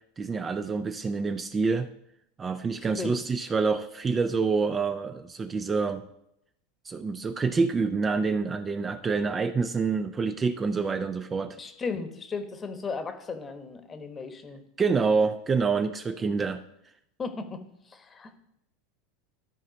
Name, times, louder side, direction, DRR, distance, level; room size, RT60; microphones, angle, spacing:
voice 1, 0.2-1.9 2.4-6.0 6.8-11.6 14.8-16.6, right 4 dB, 20° right, 9 dB, 0.4 m, -27 dB
voice 2, 11.6-14.6 17.2-17.6 17.9-18.4, left 4 dB, 25° left, 9 dB, 1.0 m, -35 dB
12.5 x 4.2 x 5.1 m, 0.78 s
supercardioid pair, 115°, 0 cm